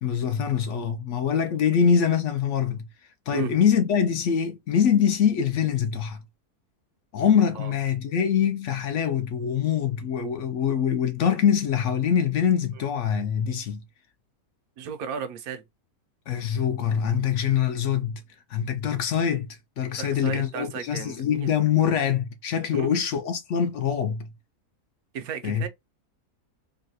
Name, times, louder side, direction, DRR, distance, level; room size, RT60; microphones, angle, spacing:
voice 1, 0.0-2.9 3.3-6.2 7.1-13.8 16.3-18.2 18.5-19.5 19.8-24.3 25.4-25.6, left 8 dB, 65° left, 0.8 m, -24 dB
voice 2, 14.8-15.6 20.0-21.5 22.7-22.9 25.1-25.7, right 7 dB, 75° right, 1.1 m, -34 dB
3.9 x 2.2 x 2.6 m
omnidirectional pair, 1.6 m